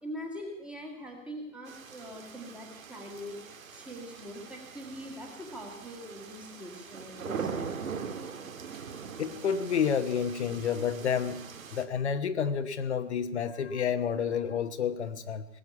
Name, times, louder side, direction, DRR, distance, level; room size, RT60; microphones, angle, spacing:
voice 1, 0.0-3.4 3.7-7.7, equal, 5° right, 1 dB, 1.7 m, -42 dB
sound 1, 1.7-11.8, right 6 dB, 75° right, 2.3 m, -42 dB
voice 2, 9.2-11.4 11.7-15.4, left 7 dB, 55° left, 8 dB, 1.1 m, -29 dB
19.5 x 7.9 x 9.5 m, 0.85 s
hypercardioid pair, 165°, 41 cm